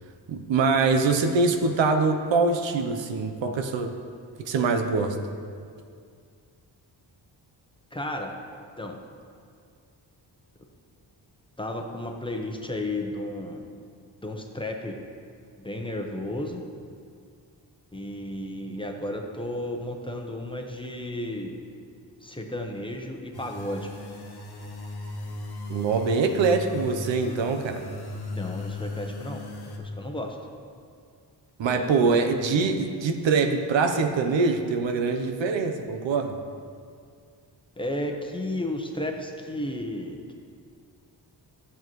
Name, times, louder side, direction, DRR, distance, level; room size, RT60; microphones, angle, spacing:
voice 1, 0.3-3.9 4.5-5.2 25.7-27.8 31.6-36.4, right 4 dB, 90° right, 6 dB, 0.8 m, -24 dB
voice 2, 7.9-8.4 8.8-9.0 11.6-13.6 14.2-15.0 15.6-16.6 17.9-21.6 22.2-23.9 28.3-29.4 29.8-30.4 37.8-40.3, left 1 dB, 10° left, 2 dB, 0.8 m, -33 dB
sound 1, 23.3-29.8, left 2 dB, 60° left, 1.3 m, -37 dB
12.0 x 7.2 x 3.1 m, 2.2 s
cardioid pair, 90°, 44 cm